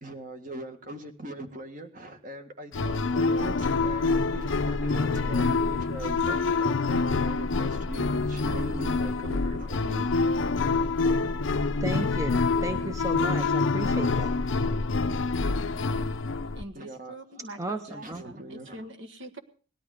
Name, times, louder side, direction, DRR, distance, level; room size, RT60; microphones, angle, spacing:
voice 1, 0.0-10.1 16.7-17.5 17.9-18.9, right 1 dB, 40° right, 6 dB, 1.7 m, -40 dB
sound 1, 2.7-16.6, left 3 dB, 60° left, 0.6 m, -26 dB
voice 2, 11.8-14.4 17.6-18.2, right 2 dB, 15° right, 7 dB, 0.7 m, -34 dB
voice 3, 16.5-19.4, right 1 dB, 55° right, 7 dB, 1.4 m, -44 dB
18.5 x 11.5 x 5.0 m, 0.41 s
head